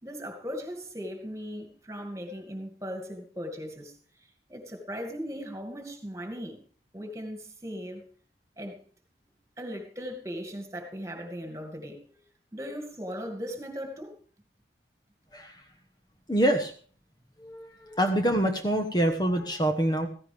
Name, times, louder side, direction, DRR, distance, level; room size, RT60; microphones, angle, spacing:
voice 1, 0.0-6.6 6.9-8.1 8.6-8.8 9.6-12.2 12.5-14.2, equal, 15° right, 2.3 m, -38 dB
voice 2, 15.3-15.6 16.3-16.7 17.4-20.1, right 1 dB, 25° left, 1.1 m, -26 dB
16.0 x 15.5 x 3.5 m
head